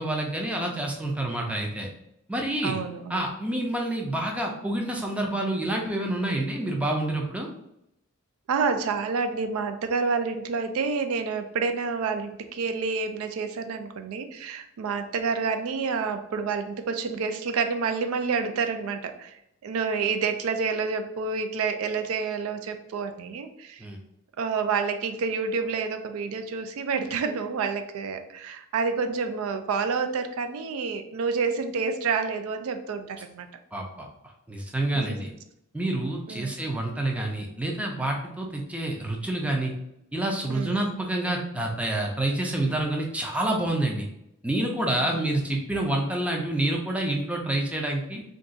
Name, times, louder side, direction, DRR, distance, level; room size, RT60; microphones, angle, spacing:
voice 1, 0.0-1.9 2.3-2.8 3.1-7.5 23.8-24.0 33.7-34.1 34.5-35.3 35.7-39.7 40.1-44.1 44.4-48.2, right 1 dB, 5° right, 0 dB, 0.4 m, -28 dB
voice 2, 2.6-3.2 8.5-23.9 24.4-33.5 34.9-35.2 36.3-36.5 40.5-41.0 45.1-45.2, right 5 dB, 75° right, 8 dB, 0.3 m, -28 dB
2.5 x 2.3 x 3.8 m, 0.80 s
head